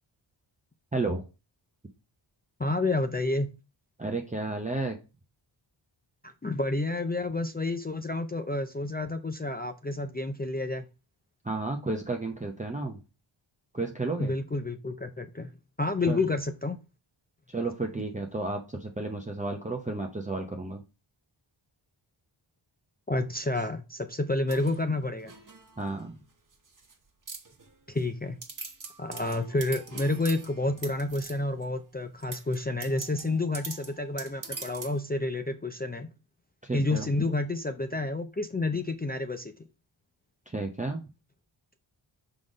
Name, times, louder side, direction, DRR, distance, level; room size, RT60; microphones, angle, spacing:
voice 1, 0.9-1.2 4.0-5.0 11.4-13.0 13.7-14.3 16.1-16.2 17.5-20.8 25.8-26.2 36.6-37.1 40.5-41.0, right 3 dB, 15° right, 0.7 m, -32 dB
voice 2, 2.6-3.5 6.2-10.8 14.2-15.5 15.8-16.8 23.1-25.3 27.9-28.4 29.0-36.1 36.7-39.5, left 2 dB, 20° left, 0.5 m, -29 dB
sound 1, 24.5-26.0 26.5-26.9 27.3-28.0 28.4-31.6 32.2-35.0, right 4 dB, 40° right, 1.3 m, -43 dB
5.7 x 3.9 x 5.0 m
wide cardioid pair, 105°, 49 cm